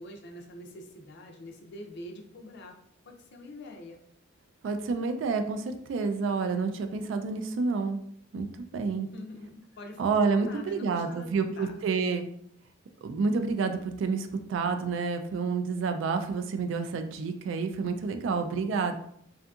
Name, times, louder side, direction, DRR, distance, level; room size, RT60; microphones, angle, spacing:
voice 1, 0.0-2.8 3.1-4.0 9.0-11.7, left 1 dB, 60° left, 3 dB, 0.4 m, -45 dB
voice 2, 4.6-8.0 8.3-9.1 10.0-12.3 13.0-18.9, right 4 dB, 65° right, 7 dB, 0.3 m, -29 dB
2.6 x 2.4 x 2.3 m, 0.67 s
head